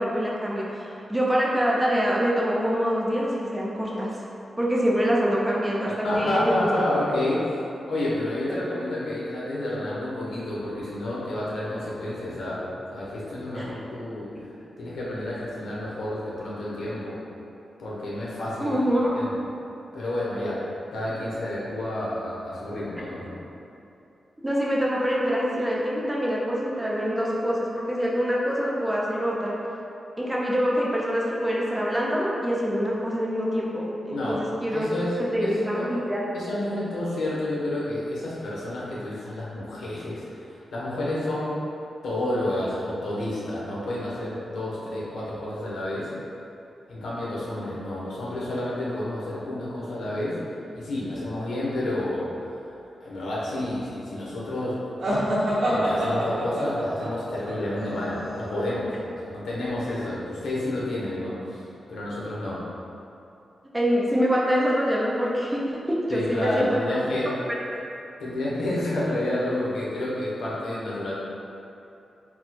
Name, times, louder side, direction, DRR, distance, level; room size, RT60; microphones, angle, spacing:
voice 1, 0.0-4.1 4.6-6.6 8.5-8.6 13.5-13.8 18.6-19.2 24.4-29.6 30.2-34.9 35.2-36.2 63.7-67.0, equal, 10° right, -4 dB, 0.5 m, -25 dB
voice 2, 6.0-7.5 7.9-12.6 12.9-14.3 14.8-17.2 17.8-18.7 19.2-19.5 19.9-20.6 20.9-23.3 34.1-34.4 34.7-35.9 36.3-41.6 42.0-46.1 46.9-50.4 50.7-52.6 53.0-54.8 55.7-58.9 59.2-62.6 66.1-67.3 68.2-71.1, left 1 dB, 85° left, -7 dB, 1.0 m, -30 dB
sound 1, 55.0-58.7, equal, 85° right, 1.1 m, -27 dB
4.2 x 2.2 x 4.3 m, 2.8 s
wide cardioid pair, 165°, 0 cm